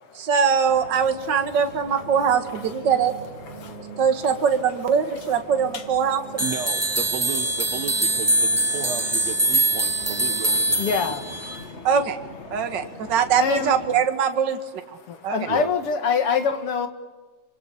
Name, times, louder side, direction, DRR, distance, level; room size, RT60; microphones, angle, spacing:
voice 1, 0.1-3.1 4.0-6.4 11.8-12.2 12.5-14.6 15.2-15.4, right 7 dB, 40° right, 7 dB, 2.2 m, -22 dB
sound 1, 0.7-14.1, left 3 dB, 25° left, 1.9 m, -43 dB
sound 2, 1.6-11.1, right 7 dB, 85° right, 4.4 m, -44 dB
sound 3, 6.4-11.6, right 2 dB, 10° right, 1.0 m, -23 dB
voice 2, 6.4-10.9 11.3-11.4 15.5-15.7, right 7 dB, 65° right, 7 dB, 2.3 m, -34 dB
voice 3, 10.8-11.2 13.4-13.8 15.1-16.9, left 6 dB, 50° left, 8 dB, 2.8 m, -24 dB
26.0 x 25.0 x 8.5 m, 1.3 s
omnidirectional pair, 3.4 m